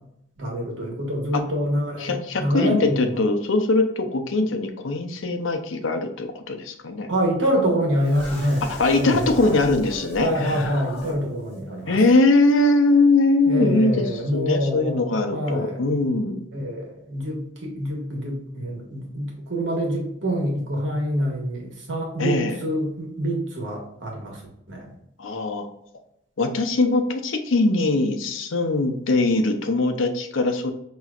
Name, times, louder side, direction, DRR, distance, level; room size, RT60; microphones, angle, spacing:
voice 1, 0.4-3.2 7.1-8.7 9.0-9.5 10.2-12.0 13.4-15.8 16.5-24.4 24.7-24.9, equal, 75° right, -1 dB, 1.4 m, -26 dB
voice 2, 2.0-7.1 8.7-11.0 11.9-14.0 14.3-16.5 22.2-22.6 25.2-25.7 26.4-30.7, left 2 dB, 90° left, 6 dB, 0.7 m, -21 dB
sound 1, 8.0-11.2 11.4-11.6 12.0-12.1, equal, 10° left, 1.2 m, -39 dB
5.8 x 3.0 x 2.4 m, 0.76 s
head